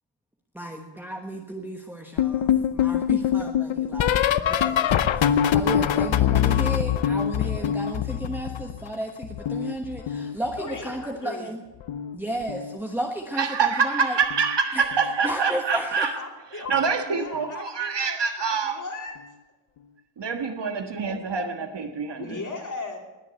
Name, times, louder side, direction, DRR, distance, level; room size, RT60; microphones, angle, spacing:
voice 1, 0.5-4.9 5.5-11.6 12.1-14.2 14.7-14.8 15.2-16.1, right 1 dB, 5° right, 1.2 m, -33 dB
sound 1, 2.2-9.0 9.2-10.8 11.8-12.2 12.4-12.8 14.3-14.6 14.9-15.2 16.7-16.8, left 9 dB, 75° left, 0.7 m, -24 dB
voice 2, 10.6-11.5 16.2-16.7 17.1-19.1 22.2-23.0, left 3 dB, 40° left, 3.0 m, -37 dB
voice 3, 13.4-16.1 16.5-18.8 20.2-22.4, right 5 dB, 60° right, 1.6 m, -26 dB
20.0 x 7.4 x 8.2 m
wide cardioid pair, 130°, 47 cm